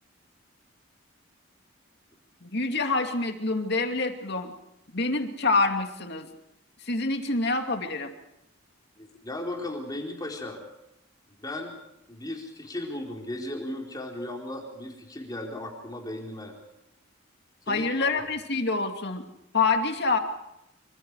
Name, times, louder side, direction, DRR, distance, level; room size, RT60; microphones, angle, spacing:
voice 1, 2.4-4.5 4.9-6.3 6.9-8.1 17.7-19.3 19.5-20.2, left 3 dB, 55° left, 5 dB, 2.6 m, -26 dB
voice 2, 9.0-10.6 11.4-11.7 12.1-16.5 17.7-18.2, left 1 dB, 20° left, 1 dB, 4.2 m, -36 dB
26.0 x 25.0 x 4.9 m, 0.85 s
head